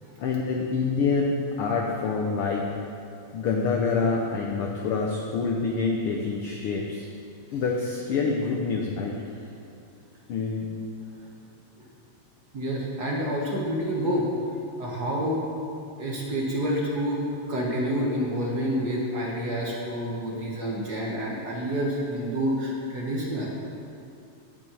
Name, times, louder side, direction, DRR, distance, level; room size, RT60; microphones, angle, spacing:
voice 1, 0.2-2.7 3.3-7.1 7.5-9.2 10.3-10.7, left 4 dB, 75° left, 0 dB, 1.3 m, -26 dB
voice 2, 12.5-14.3 14.8-15.5 16.0-17.2 17.5-23.5, equal, 50° right, -3 dB, 1.2 m, -28 dB
9.3 x 6.0 x 8.2 m, 2.6 s
omnidirectional pair, 3.4 m